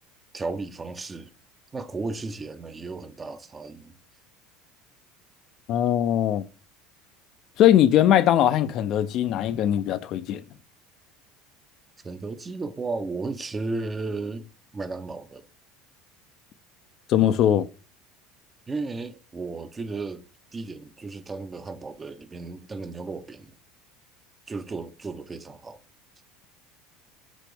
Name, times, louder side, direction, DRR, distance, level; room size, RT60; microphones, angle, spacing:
voice 1, 0.3-1.3 1.7-3.9 12.0-14.5 14.7-15.5 18.7-20.2 20.5-23.5 24.5-25.8, right 3 dB, 20° right, 0.5 m, -34 dB
voice 2, 5.7-6.5 7.6-10.4 17.1-17.7, left 11 dB, 55° left, 0.3 m, -20 dB
6.0 x 2.5 x 3.4 m
supercardioid pair, 100°, 0 cm